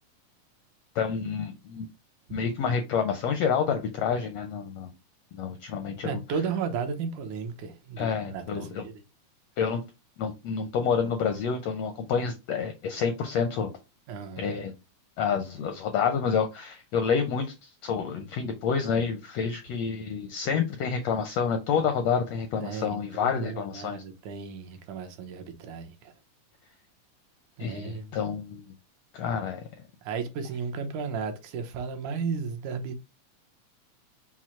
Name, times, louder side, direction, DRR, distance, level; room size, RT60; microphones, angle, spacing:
voice 1, 0.9-1.9 2.3-4.9 5.4-6.2 8.0-8.8 9.6-9.8 10.2-13.7 14.4-14.7 15.2-24.0 27.6-28.6 29.1-29.6, left 6 dB, 80° left, 1.4 m, -28 dB
voice 2, 6.0-9.0 14.1-14.5 22.6-26.1 27.6-28.2 30.0-33.1, right 5 dB, 75° right, 2.2 m, -34 dB
6.1 x 2.0 x 4.2 m
omnidirectional pair, 3.6 m